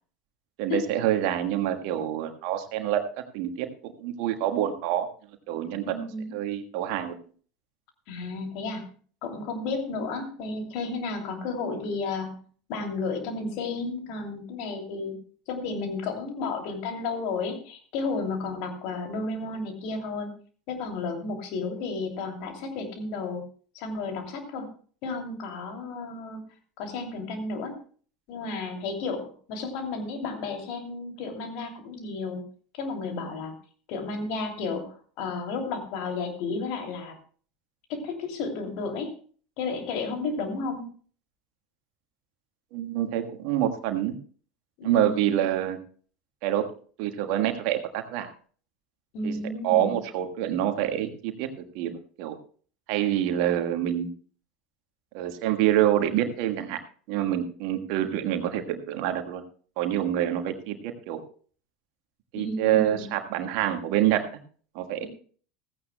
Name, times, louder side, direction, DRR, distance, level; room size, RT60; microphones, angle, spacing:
voice 1, 0.6-3.0 3.3-5.1 5.5-5.8 6.3-7.1 42.7-44.2 44.8-45.8 46.4-46.7 47.0-48.3 49.2-49.3 49.6-52.4 52.9-54.1 55.1-56.8 57.1-59.4 59.8-61.2 62.3-64.3 64.7-65.1, right 11 dB, 55° right, 7 dB, 1.4 m, -26 dB
voice 2, 5.8-6.3 8.1-8.8 9.2-12.4 12.7-15.2 15.5-20.3 20.7-23.4 23.7-24.7 25.0-26.4 26.8-27.8 28.3-32.4 32.7-33.6 33.9-37.1 37.9-39.2 39.6-40.9 44.8-45.4 49.1-50.0 62.3-63.1, left 3 dB, 55° left, 4 dB, 2.8 m, -32 dB
15.5 x 15.5 x 2.2 m, 0.43 s
figure-of-eight pair, 75°, 0 cm